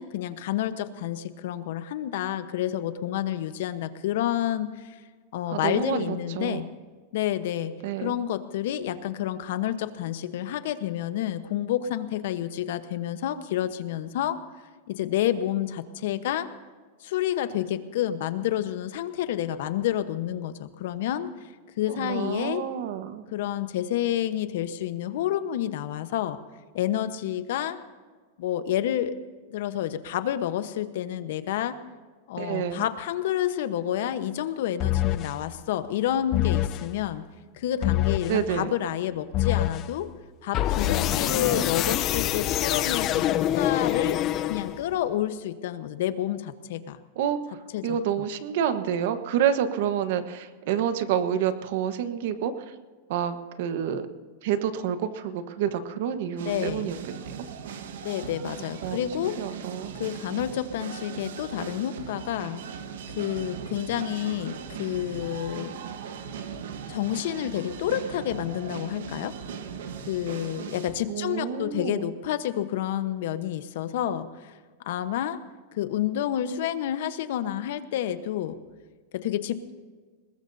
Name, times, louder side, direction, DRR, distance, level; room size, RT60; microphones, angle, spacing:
voice 1, 0.0-5.0 5.3-6.7 7.1-7.7 8.0-14.4 14.9-16.5 17.0-21.3 21.8-22.6 23.3-26.4 26.7-27.8 28.4-29.1 29.5-31.8 32.3-37.2 37.5-40.1 40.4-44.2 44.5-47.0 47.7-48.2 56.5-56.9 58.0-59.4 60.0-62.6 63.2-65.7 66.9-69.4 70.1-74.5 74.9-75.4 75.7-78.6 79.1-79.7, left 11 dB, 60° left, 11 dB, 1.0 m, -29 dB
voice 2, 5.5-6.7 7.8-8.2 21.9-23.2 32.4-32.8 38.3-38.7 47.1-52.7 53.1-54.1 54.4-57.5 58.8-59.9 71.1-72.1, right 9 dB, 55° right, 10 dB, 1.2 m, -29 dB
sound 1, 34.8-35.4 36.3-36.9 37.8-38.4 39.3-39.9 40.5-44.9, left 13 dB, 30° left, 0.6 m, -25 dB
sound 2, 56.4-70.9, right 7 dB, 85° right, 1.5 m, -39 dB
22.5 x 20.0 x 2.7 m, 1.5 s
supercardioid pair, 165°, 0 cm